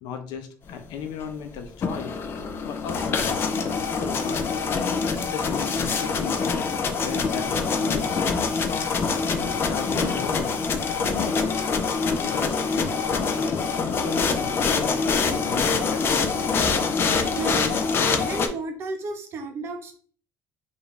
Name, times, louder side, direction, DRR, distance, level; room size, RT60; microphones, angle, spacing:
voice 1, 0.0-2.2 2.6-4.5 5.1-6.4 6.9-8.9 9.4-10.6 10.9-11.4 12.2-12.6 13.1-16.4, left 7 dB, 70° left, 8 dB, 0.7 m, -36 dB
sound 1, 1.6-18.5, left 5 dB, 30° left, 0.4 m, -25 dB
voice 2, 17.4-17.8 18.3-19.9, right 2 dB, 35° right, 4 dB, 0.8 m, -32 dB
5.0 x 2.6 x 3.2 m, 0.43 s
cardioid pair, 170°, 7 cm